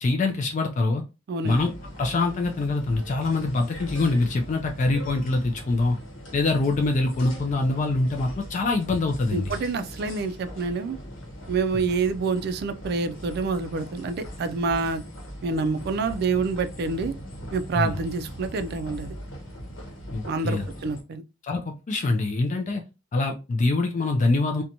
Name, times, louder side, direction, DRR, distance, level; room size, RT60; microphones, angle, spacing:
voice 1, 0.0-1.0 1.4-1.7 2.0-6.0 6.3-9.5 11.7-11.8 17.7-17.9 20.1-20.6 21.4-22.8 23.1-24.6, left 2 dB, 40° left, 0.3 m, -24 dB
sound 1, 1.4-21.0, equal, 80° left, 0.9 m, -40 dB
voice 2, 9.3-11.0 11.5-15.0 15.4-17.1 17.5-19.1 20.3-21.2, right 4 dB, 55° right, 0.3 m, -27 dB
2.8 x 2.1 x 2.5 m
head